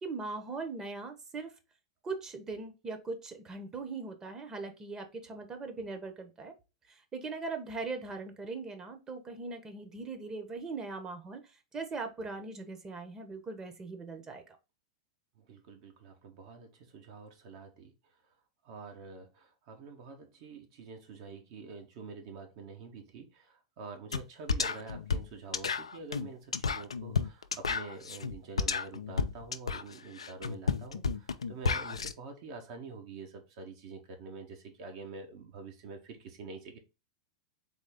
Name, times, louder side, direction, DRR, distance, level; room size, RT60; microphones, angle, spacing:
voice 1, 0.0-1.5 2.0-6.5 6.9-14.4, right 3 dB, 20° right, 1.1 m, -40 dB
voice 2, 15.4-17.9 18.6-36.8, right 4 dB, 50° right, 1.4 m, -47 dB
sound 1, 24.1-24.2 24.5-32.1, left 5 dB, 80° left, 0.4 m, -32 dB
4.1 x 3.3 x 3.6 m
figure-of-eight pair, 95°, 3 cm